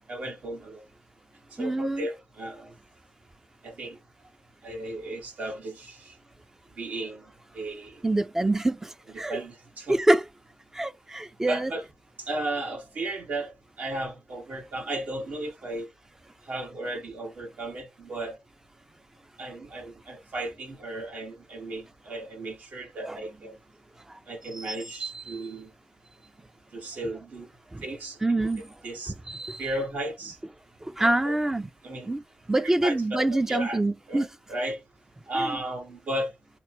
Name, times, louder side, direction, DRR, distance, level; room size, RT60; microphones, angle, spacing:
voice 1, 0.1-0.8 1.5-2.7 3.6-4.0 4.6-6.1 6.8-7.2 7.5-8.0 9.1-10.0 11.5-11.8 12.2-13.5 13.8-15.9 16.5-18.4 19.4-23.5 24.3-25.7 26.7-27.5 27.8-28.2 28.8-29.1 29.6-30.4 31.0-31.3 31.8-32.1 32.6-33.8 34.1-34.8 35.3-36.3, right 1 dB, 70° right, 1.7 m, -35 dB
voice 2, 1.6-2.1 8.0-9.4 9.9-10.2 10.7-11.7 23.0-23.2 24.6-24.7 25.0-25.5 27.7-27.8 28.2-28.6 29.3-29.6 30.8-31.7 32.1-32.2 32.5-34.3 35.3-35.6, right 2 dB, 15° right, 0.4 m, -26 dB
4.3 x 2.0 x 4.3 m
wide cardioid pair, 95°, 3 cm